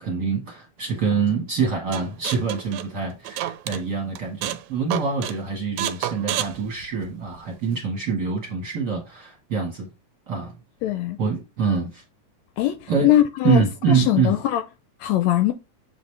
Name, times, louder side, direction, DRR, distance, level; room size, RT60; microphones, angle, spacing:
voice 1, 0.0-9.9 10.3-10.5 11.2-12.0 12.9-13.1 13.4-14.4, right 5 dB, 45° right, 1.5 m, -25 dB
sound 1, 1.9-3.8 4.2-4.6 4.9-5.4 5.8-7.4, right 12 dB, 85° right, 2.0 m, -29 dB
voice 2, 10.8-11.2 12.6-13.6 13.9-14.6 15.0-15.5, left 13 dB, 80° left, 1.7 m, -21 dB
7.1 x 4.1 x 3.2 m
omnidirectional pair, 3.5 m